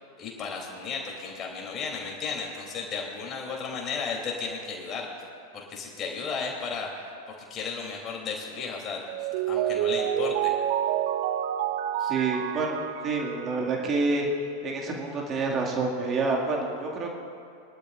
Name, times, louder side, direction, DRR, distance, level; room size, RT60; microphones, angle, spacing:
voice 1, 0.2-5.1 5.5-10.5 12.0-12.1, left 5 dB, 25° left, -1 dB, 3.1 m, -34 dB
Mallet percussion, 9.1-14.0, right 10 dB, 50° right, 0.6 m, -28 dB
voice 2, 12.1-12.8 13.0-14.3 14.6-17.1, right 3 dB, 25° right, -1 dB, 2.1 m, -28 dB
24.0 x 11.5 x 2.5 m, 2.4 s
figure-of-eight pair, 90°, 0 cm